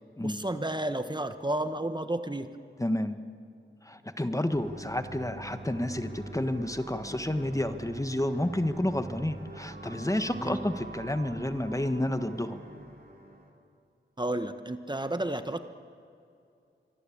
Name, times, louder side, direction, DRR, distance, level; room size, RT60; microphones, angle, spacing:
voice 1, 0.2-2.5 10.4-10.6 14.2-15.6, right 1 dB, 20° right, 9 dB, 1.3 m, -31 dB
voice 2, 2.8-3.2 3.8-12.6, left 1 dB, 15° left, 9 dB, 1.5 m, -30 dB
sound 1, 4.5-13.5, right 2 dB, 50° right, 4.8 m, -44 dB
26.0 x 23.0 x 8.7 m, 2.5 s
wide cardioid pair, 55°, 20 cm